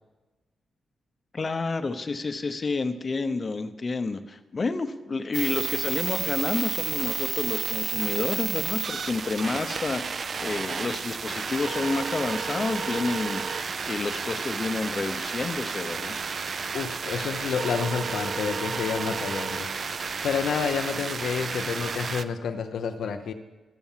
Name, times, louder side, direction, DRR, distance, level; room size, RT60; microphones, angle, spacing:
voice 1, 1.3-16.2, left 3 dB, 25° left, 9 dB, 0.7 m, -30 dB
sound 1, 5.3-22.2, right 5 dB, 40° right, 0.4 m, -31 dB
voice 2, 16.7-23.3, left 6 dB, 75° left, 6 dB, 0.7 m, -29 dB
12.5 x 6.9 x 7.3 m, 1.2 s
wide cardioid pair, 160°, 0 cm